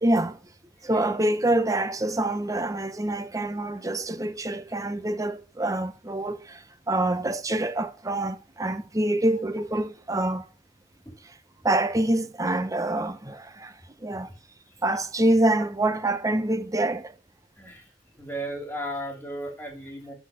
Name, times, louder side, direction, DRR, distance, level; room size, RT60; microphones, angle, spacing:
voice 1, 0.0-0.4 0.8-10.5 11.6-13.7 14.0-14.3 14.8-17.1, right 1 dB, 15° right, 0.8 m, -26 dB
voice 2, 18.2-20.1, right 1 dB, 10° left, 2.9 m, -35 dB
12.5 x 4.3 x 5.8 m
head